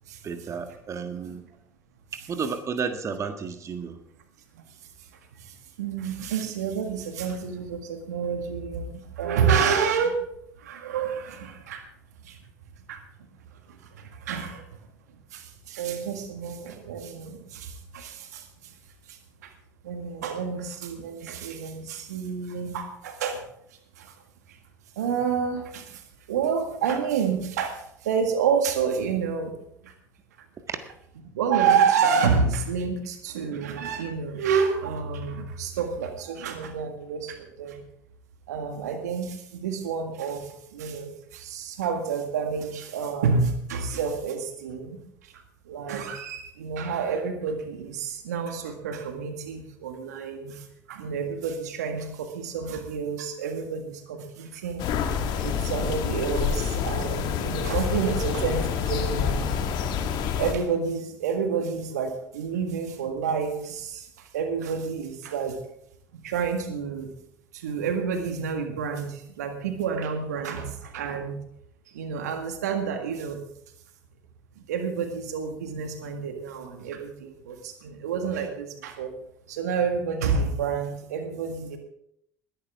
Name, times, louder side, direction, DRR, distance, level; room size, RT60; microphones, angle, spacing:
voice 1, 0.2-1.4 2.3-4.0 30.7-30.8, right 6 dB, 35° right, 7 dB, 1.6 m, -32 dB
voice 2, 5.4-10.2 10.6-11.8 12.2-12.4 12.9-13.0 14.0-14.6 15.3-18.7 19.1-19.5 19.8-23.4 24.0-24.1 24.9-26.0 26.3-29.5 29.8-29.9 31.3-37.8 38.5-45.0 45.7-54.9 55.4-59.4 60.4-64.1 64.3-65.6 66.1-67.1 67.5-71.4 71.9-73.4 74.7-79.1 79.5-81.8, right 6 dB, 75° right, 6 dB, 1.7 m, -29 dB
sound 1, 54.8-60.5, left 7 dB, 55° left, 1.9 m, -27 dB
20.5 x 11.0 x 3.6 m, 0.71 s
figure-of-eight pair, 70°, 9 cm